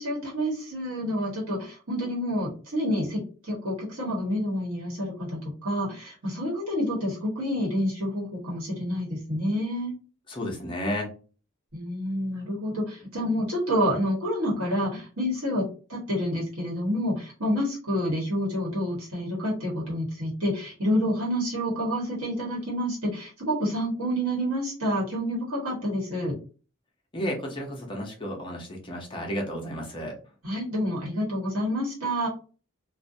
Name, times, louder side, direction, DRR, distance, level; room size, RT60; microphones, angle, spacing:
voice 1, 0.0-9.9 11.7-15.6 15.9-26.3 30.4-32.3, equal, 85° right, -4 dB, 1.2 m, -28 dB
voice 2, 10.3-11.1 27.1-30.1, equal, 25° left, 0 dB, 0.6 m, -32 dB
2.5 x 2.1 x 2.6 m, 0.37 s
head